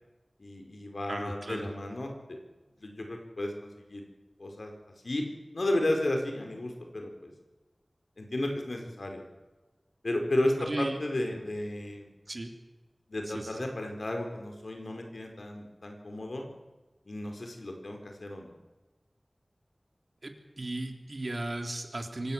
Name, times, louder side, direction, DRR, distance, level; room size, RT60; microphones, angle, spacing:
voice 1, 0.4-2.4 2.8-4.0 4.4-4.7 5.0-5.2 5.5-7.3 8.2-9.2 10.0-12.1 13.1-16.5 17.0-18.5, left 1 dB, 80° left, 3 dB, 4.7 m, -33 dB
voice 2, 1.1-1.7 10.7-11.0 12.3-12.5 13.6-13.7 20.2-22.3, right 2 dB, 60° right, 5 dB, 3.3 m, -35 dB
25.0 x 17.0 x 7.5 m, 1.2 s
wide cardioid pair, 40°, 0 cm